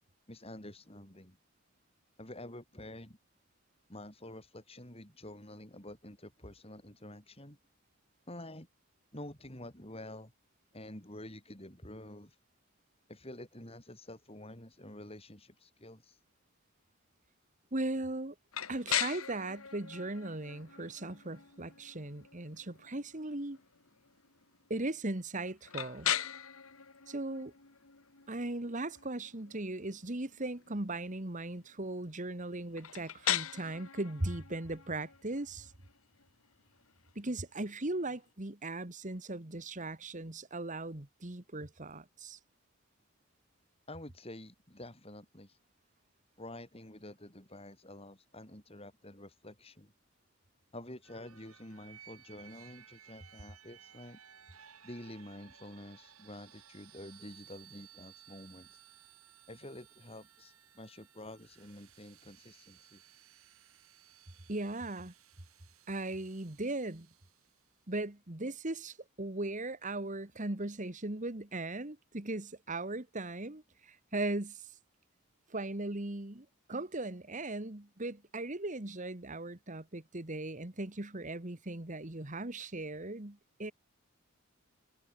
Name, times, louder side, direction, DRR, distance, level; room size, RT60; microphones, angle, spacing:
voice 1, 0.3-1.4 2.2-3.2 3.9-7.6 8.3-8.7 9.1-10.3 10.7-12.4 13.1-16.2 43.9-45.6 46.4-49.9 50.7-54.2 54.8-58.8 59.5-63.0, left 1 dB, 25° left, 6.2 m, -48 dB
voice 2, 17.7-18.3 18.7-23.6 24.7-26.1 27.1-27.5 28.3-35.7 37.1-42.4 64.5-65.1 65.9-67.1 67.9-74.7 75.5-83.7, right 2 dB, 35° right, 1.7 m, -38 dB
sound 1, 18.5-38.3, left 10 dB, 75° left, 2.1 m, -41 dB
sound 2, 51.0-67.8, right 10 dB, 80° right, 4.3 m, -59 dB
head